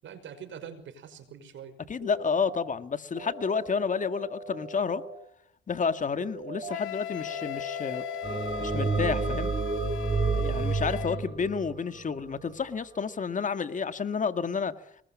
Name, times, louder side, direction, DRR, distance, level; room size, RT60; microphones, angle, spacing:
voice 1, 0.0-1.8 11.1-11.4, right 7 dB, 70° right, 10 dB, 5.7 m, -44 dB
voice 2, 1.9-5.0 5.7-8.0 8.6-9.5 10.3-14.7, left 5 dB, 40° left, 11 dB, 1.9 m, -30 dB
sound 1, 2.0-2.6 3.2-5.2 6.2-6.8 7.3-9.3, right 3 dB, 45° right, 6.3 m, -41 dB
Wind instrument woodwind instrument, 6.7-11.2, left 16 dB, 85° left, 2.4 m, -37 dB
sound 2, 8.2-12.6, right 4 dB, 25° right, 5.0 m, -29 dB
26.5 x 21.0 x 7.5 m, 0.67 s
cardioid pair, 90°, 20 cm